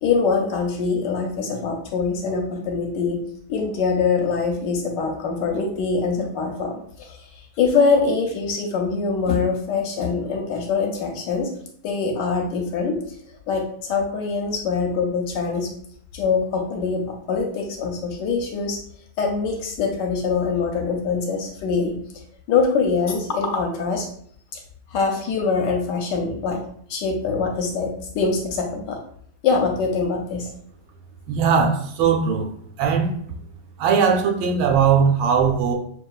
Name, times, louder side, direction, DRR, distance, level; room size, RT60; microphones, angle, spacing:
voice 1, 0.0-3.2 3.5-11.5 11.8-13.2 13.5-15.7 16.1-18.8 19.2-22.0 22.5-24.1 24.9-26.6 26.9-29.0 29.4-30.5, left 4 dB, 75° left, 2 dB, 1.1 m, -23 dB
voice 2, 31.3-32.5 32.8-33.1 33.8-35.7, right 6 dB, 80° right, 1 dB, 1.5 m, -19 dB
6.4 x 2.3 x 2.3 m, 0.64 s
omnidirectional pair, 2.2 m